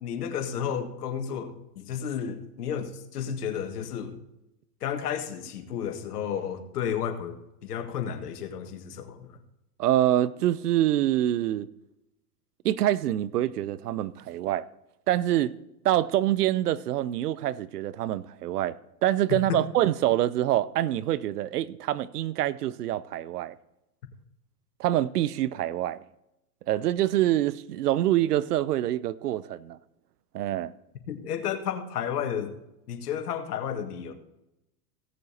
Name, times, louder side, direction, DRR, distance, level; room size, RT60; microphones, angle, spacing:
voice 1, 0.0-4.2 4.8-9.3 19.3-19.6 31.1-32.5 32.9-34.1, left 8 dB, 75° left, 1.8 m, -32 dB
voice 2, 9.8-11.7 12.6-14.7 15.1-15.6 15.8-18.8 19.0-23.5 24.8-26.0 26.7-29.8 30.3-30.7, right 13 dB, 75° right, 0.7 m, -25 dB
17.0 x 6.8 x 4.2 m
hypercardioid pair, 120°, 47 cm